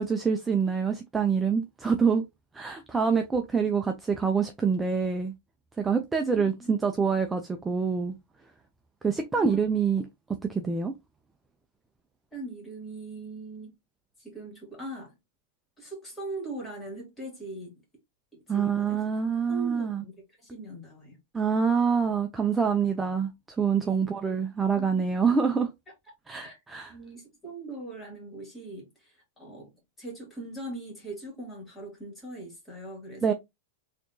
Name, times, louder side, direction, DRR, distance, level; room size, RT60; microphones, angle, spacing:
voice 1, 0.0-2.2 2.5-5.3 5.8-8.2 9.0-10.1 10.5-10.9 18.5-20.0 21.3-25.7 26.3-26.9 33.2-33.3, right 6 dB, 10° right, 0.4 m, -26 dB
voice 2, 12.3-13.7 14.2-15.1 15.8-17.7 18.5-19.0 19.5-20.1 20.4-21.2 23.8-24.1 24.8-25.0 26.4-26.6 26.9-28.9 29.4-29.7 30.0-33.3, right 2 dB, 10° left, 2.2 m, -40 dB
4.2 x 2.9 x 2.6 m
supercardioid pair, 150°, 0 cm